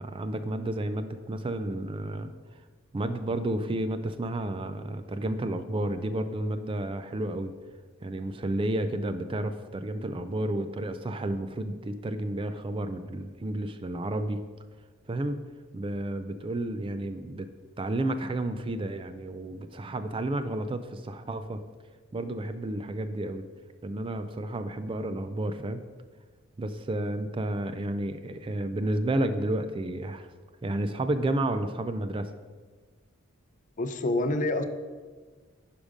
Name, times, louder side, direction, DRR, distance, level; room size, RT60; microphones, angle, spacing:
voice 1, 0.0-2.6 2.9-7.5 8.0-14.4 15.1-15.4 15.7-17.5 17.8-21.6 22.1-23.4 23.8-25.8 26.6-30.3 30.6-32.3, right 1 dB, 25° right, 10 dB, 0.4 m, -31 dB
voice 2, 33.8-34.6, left 2 dB, 35° left, 8 dB, 0.5 m, -27 dB
9.9 x 5.2 x 5.1 m, 1.4 s
head